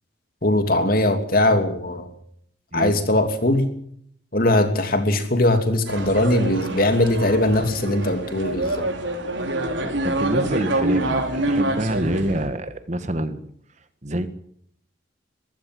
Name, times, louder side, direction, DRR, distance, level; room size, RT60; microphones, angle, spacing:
voice 1, 0.4-2.1 2.7-3.7 4.3-8.8, left 1 dB, 50° left, 7 dB, 3.0 m, -20 dB
sound 1, 5.9-12.5, right 2 dB, 90° right, 4.6 m, -26 dB
voice 2, 10.0-13.5 14.0-14.3, right 1 dB, 40° right, 11 dB, 1.6 m, -26 dB
22.5 x 15.0 x 7.8 m, 0.67 s
head